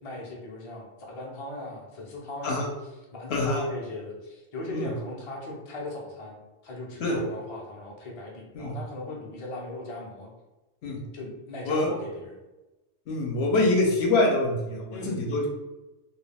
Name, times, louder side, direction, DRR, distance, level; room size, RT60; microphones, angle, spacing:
voice 1, 0.0-2.7 3.1-6.4 6.6-10.3 11.1-12.4 14.9-15.5, left 2 dB, 45° left, -2 dB, 0.4 m, -38 dB
voice 2, 3.3-3.6 4.7-4.9 7.0-7.2 8.5-8.7 10.8-11.0 11.6-11.9 13.1-15.5, left 2 dB, 70° left, 0 dB, 0.8 m, -25 dB
2.3 x 2.2 x 3.3 m, 1.1 s
omnidirectional pair, 1.2 m